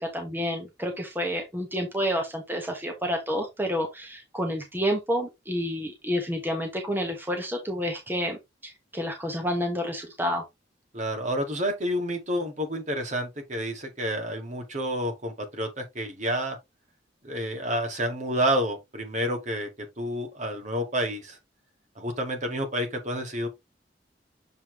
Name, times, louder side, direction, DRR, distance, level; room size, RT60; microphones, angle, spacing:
voice 1, 0.0-10.4, equal, 10° right, 1.3 m, -29 dB
voice 2, 10.9-16.6 17.2-19.7 20.0-21.4 22.0-23.5, equal, 45° right, 2.1 m, -29 dB
7.2 x 4.3 x 3.2 m
head